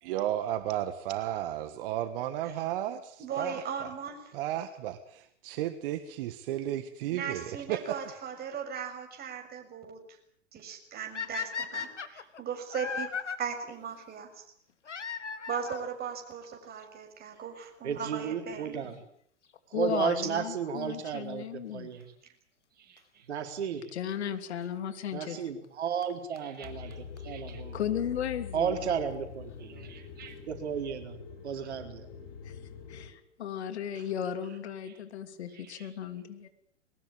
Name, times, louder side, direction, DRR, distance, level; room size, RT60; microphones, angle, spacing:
voice 1, 0.0-3.9 4.3-8.0, right 12 dB, 50° right, 10 dB, 1.8 m, -34 dB
voice 2, 3.2-4.2 7.1-10.0 10.5-13.1 13.4-14.3 15.5-19.0 20.2-20.3 22.8-23.0 26.3-26.7 27.2-27.6 29.9-30.4 34.9-35.0 35.5-35.9, right 7 dB, 25° right, 4 dB, 6.9 m, -38 dB
sound 1, 11.1-13.4 14.8-15.9 16.8-16.9 17.6-17.7 17.9-18.0 19.9-20.1 23.0-23.1 24.1-24.2 25.6-25.7 26.0-26.1 26.4-26.5 26.6-26.7 26.9-27.0 27.2-27.3 27.5-27.6, left 6 dB, 85° left, 2.4 m, -36 dB
voice 3, 17.8-18.9 19.7-22.1 23.3-23.8 25.1-27.8 28.5-29.9 30.5-31.2 31.4-32.1 34.0-34.1, right 7 dB, 70° right, 6 dB, 4.1 m, -33 dB
voice 4, 19.7-21.9 23.9-25.4 27.7-28.8 32.4-32.5 32.9-36.5, left 9 dB, 65° left, 10 dB, 3.0 m, -35 dB
sound 2, 26.6-33.1, left 6 dB, 45° left, 6.5 m, -44 dB
22.5 x 20.0 x 8.9 m, 0.65 s
hypercardioid pair, 110°, 35 cm